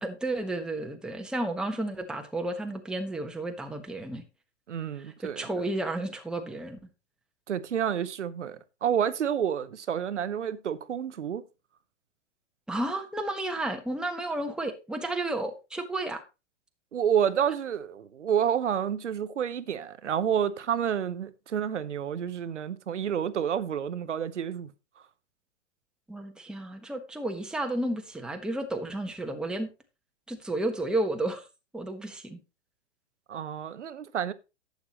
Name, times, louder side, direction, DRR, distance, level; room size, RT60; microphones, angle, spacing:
voice 1, 0.0-4.2 5.2-6.8 12.7-16.2 26.1-29.7 30.3-31.4 31.7-32.4, right 2 dB, ahead, 1.2 m, -32 dB
voice 2, 4.7-5.5 7.5-11.4 16.9-24.7 33.3-34.3, right 8 dB, 85° right, 0.9 m, -29 dB
11.5 x 8.2 x 3.0 m
hypercardioid pair, 115°, 35 cm